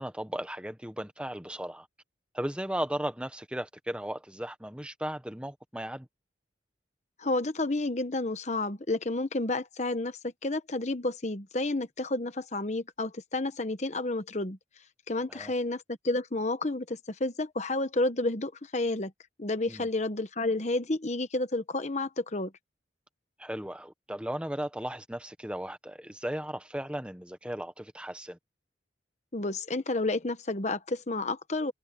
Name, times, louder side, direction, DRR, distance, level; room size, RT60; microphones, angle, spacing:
voice 1, 0.0-1.9 2.3-6.1 15.3-15.5 19.7-19.9 23.4-28.4, right 1 dB, 5° right, 1.1 m, -36 dB
voice 2, 7.2-14.6 15.1-19.1 19.4-22.5 29.3-31.7, left 2 dB, 40° left, 1.1 m, -30 dB
head